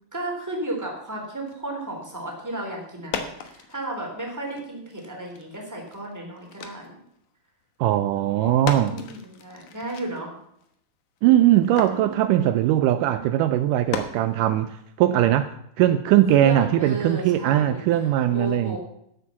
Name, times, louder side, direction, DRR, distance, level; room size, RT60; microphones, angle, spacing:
voice 1, 0.1-7.0 8.4-10.4 11.9-12.4 16.4-18.8, right 1 dB, 5° right, 3.3 m, -34 dB
sound 1, 1.5-1.6 2.5-2.6 2.9-4.1 4.3-7.3 7.6-7.7 7.9-10.7 11.2-12.6 13.5-13.6 13.9-14.8, left 7 dB, 70° left, 2.6 m, -36 dB
voice 2, 7.8-9.0 11.2-15.5 15.8-18.8, right 12 dB, 80° right, 2.1 m, -20 dB
12.5 x 8.3 x 7.2 m
omnidirectional pair, 3.9 m